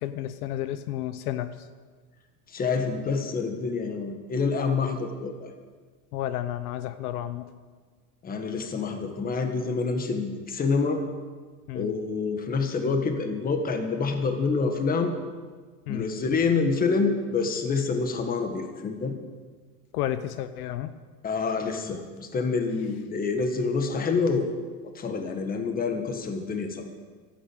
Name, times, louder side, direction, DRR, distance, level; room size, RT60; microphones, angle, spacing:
voice 1, 0.0-1.7 6.1-7.5 11.7-11.9 15.9-16.1 19.9-20.9, left 12 dB, 70° left, 11 dB, 0.9 m, -31 dB
voice 2, 2.5-5.5 8.2-11.0 11.7-15.1 15.9-19.1 21.2-24.5 24.8-26.9, left 4 dB, 20° left, 5 dB, 1.6 m, -27 dB
12.5 x 11.0 x 8.1 m, 1.5 s
supercardioid pair, 145°, 47 cm